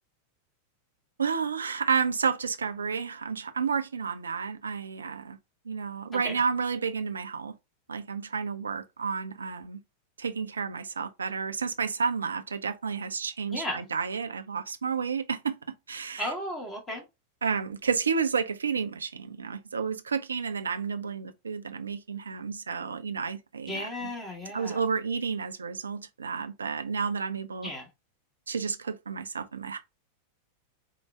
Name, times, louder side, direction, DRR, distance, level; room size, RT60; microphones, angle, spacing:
voice 1, 1.2-5.4 5.7-7.5 7.9-9.8 10.2-15.6 15.9-16.3 17.4-24.1 24.5-27.7 28.5-29.8, right 6 dB, 75° right, 0.6 m, -31 dB
voice 2, 13.5-13.8 16.2-17.0 23.7-24.8 27.6-27.9, left 1 dB, 15° left, 1.6 m, -35 dB
4.6 x 2.3 x 4.3 m
figure-of-eight pair, 90°, 0 cm